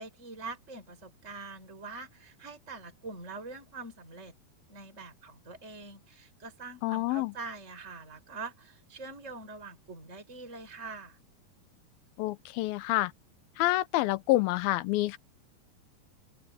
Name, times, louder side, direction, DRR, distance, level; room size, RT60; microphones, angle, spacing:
voice 1, 0.0-4.3 4.7-11.2, right 3 dB, 20° right, 5.6 m, -44 dB
voice 2, 6.8-7.3 12.2-13.1 13.6-15.2, left 17 dB, 80° left, 2.7 m, -27 dB
open air
omnidirectional pair, 4.3 m